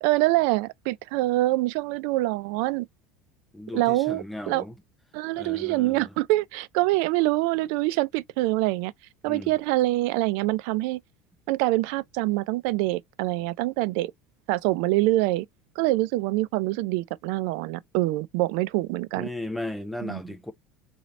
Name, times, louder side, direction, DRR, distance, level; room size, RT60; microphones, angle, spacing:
voice 1, 0.0-2.9 3.7-4.6 5.1-8.9 9.2-11.0 11.5-14.1 14.5-15.5 15.8-19.3 20.0-20.2, right 18 dB, 70° right, 0.3 m, -25 dB
voice 2, 3.5-4.7 5.4-6.1 9.3-9.6 19.2-20.5, left 1 dB, ahead, 0.5 m, -36 dB
3.1 x 2.7 x 4.0 m
cardioid pair, 145°, 0 cm